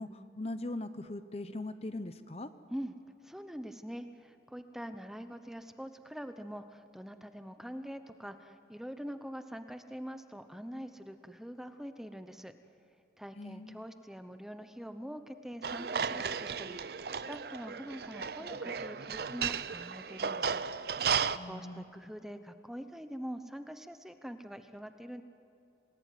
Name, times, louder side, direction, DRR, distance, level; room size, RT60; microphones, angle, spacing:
voice 1, 0.0-2.5 13.4-13.8 21.4-21.8, left 2 dB, 35° left, 11 dB, 0.8 m, -40 dB
voice 2, 3.2-12.5 13.2-20.6 21.4-25.2, equal, ahead, 8 dB, 0.9 m, -44 dB
sound 1, 15.6-21.4, right 6 dB, 55° right, 0.6 m, -34 dB
27.0 x 19.0 x 9.4 m, 2.4 s
head